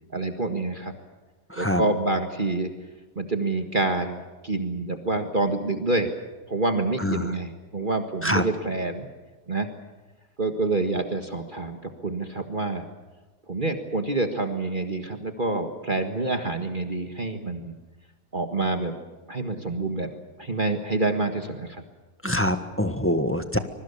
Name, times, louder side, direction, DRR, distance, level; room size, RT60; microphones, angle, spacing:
voice 1, 0.1-0.9 1.6-2.7 3.2-4.2 4.4-6.1 6.5-9.1 9.5-9.7 10.4-12.8 13.5-17.7 18.3-18.9 19.3-20.1 20.4-21.8, right 2 dB, 30° right, 5 dB, 1.7 m, -27 dB
voice 2, 1.5-1.8 7.0-7.3 8.2-8.4 22.2-23.6, left 1 dB, 10° left, 8 dB, 1.4 m, -25 dB
25.0 x 23.0 x 7.0 m, 1.2 s
omnidirectional pair, 1.8 m